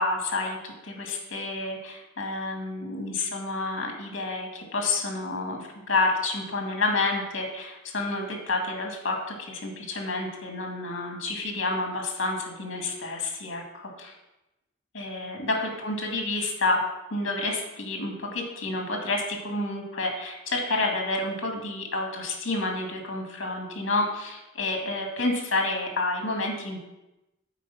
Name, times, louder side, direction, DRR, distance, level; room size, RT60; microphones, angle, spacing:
voice 1, 0.0-5.6 5.9-14.1 14.9-16.8 17.1-26.8, left 2 dB, 80° left, 1 dB, 1.9 m, -29 dB
8.3 x 4.9 x 5.6 m, 0.97 s
head